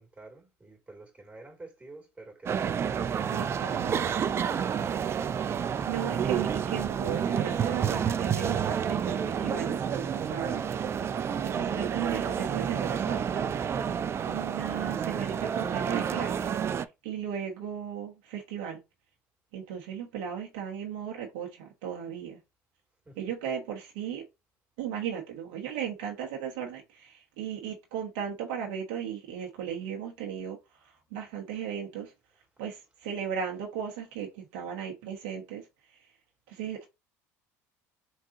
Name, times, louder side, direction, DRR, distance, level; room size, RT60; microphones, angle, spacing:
voice 1, 0.0-4.0 23.0-23.3 30.9-31.5 32.3-32.4 33.8-33.9, right 2 dB, 15° right, 2.6 m, -50 dB
sound 1, 2.5-16.9, right 7 dB, 35° right, 0.5 m, -29 dB
voice 2, 3.3-4.1 5.9-10.6 11.4-13.5 14.3-18.8 19.5-22.4 23.2-24.2 24.8-32.1 32.6-36.1 36.5-36.9, right 8 dB, 75° right, 1.2 m, -36 dB
4.5 x 3.7 x 2.9 m
supercardioid pair, 85°, 7 cm